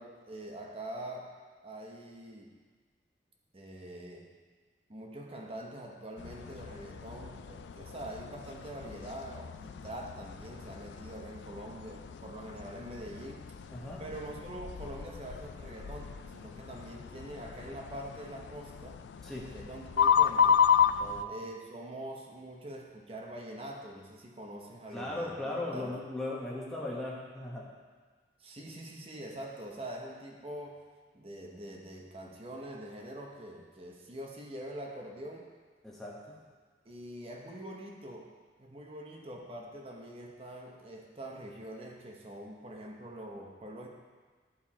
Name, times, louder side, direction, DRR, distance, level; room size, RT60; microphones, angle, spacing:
voice 1, 0.0-1.3 1.6-2.5 3.5-4.3 4.9-13.5 14.0-19.0 19.5-20.6 21.2-25.9 28.4-30.8 31.1-35.5 36.8-38.3 38.6-43.9, right 1 dB, 35° right, 0 dB, 0.8 m, -44 dB
sound 1, 6.2-21.2, left 7 dB, 80° left, 0.3 m, -32 dB
voice 2, 13.7-14.0 19.2-19.5 21.0-21.4 24.9-27.7 35.8-36.4, left 2 dB, ahead, -6 dB, 1.1 m, -38 dB
11.0 x 4.5 x 4.2 m, 1.5 s
head